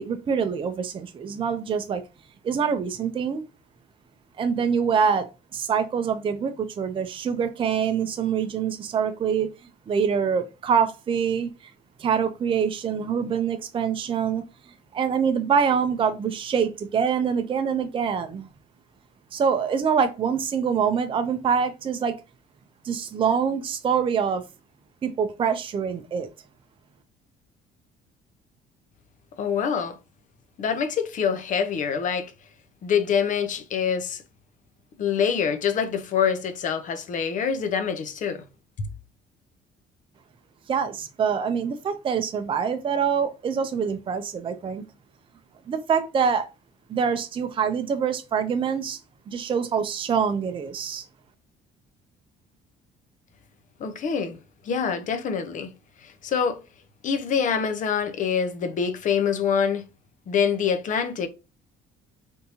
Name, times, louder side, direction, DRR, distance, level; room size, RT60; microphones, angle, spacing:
voice 1, 0.0-2.0 2.4-3.4 4.4-5.3 5.5-9.5 9.9-11.7 12.0-14.4 14.9-18.5 19.3-22.2 22.8-24.4 25.0-26.3 40.7-44.8 45.7-46.5 46.9-49.0 49.3-51.0, right 6 dB, 30° right, 0.5 m, -25 dB
voice 2, 29.4-30.0 30.6-32.3 32.8-34.2 35.0-38.4 38.8-38.9 53.8-54.4 54.6-55.7 56.0-56.6 57.0-59.8 60.3-61.3, left 7 dB, 50° left, 0.7 m, -25 dB
3.5 x 2.7 x 2.8 m
cardioid pair, 110°, 17 cm